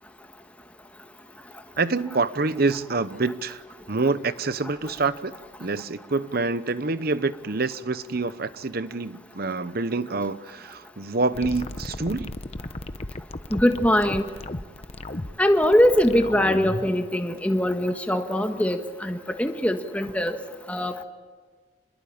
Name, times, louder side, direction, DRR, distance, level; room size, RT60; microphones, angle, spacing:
voice 1, 1.8-3.6 3.9-5.3 5.6-12.3, right 3 dB, 50° right, 14 dB, 0.9 m, -26 dB
sound 1, 11.3-16.9, left 1 dB, 30° left, 0.9 m, -34 dB
voice 2, 13.5-14.2 15.4-20.4 20.7-21.0, equal, 5° left, 5 dB, 1.6 m, -22 dB
27.5 x 21.5 x 8.7 m, 1.4 s
head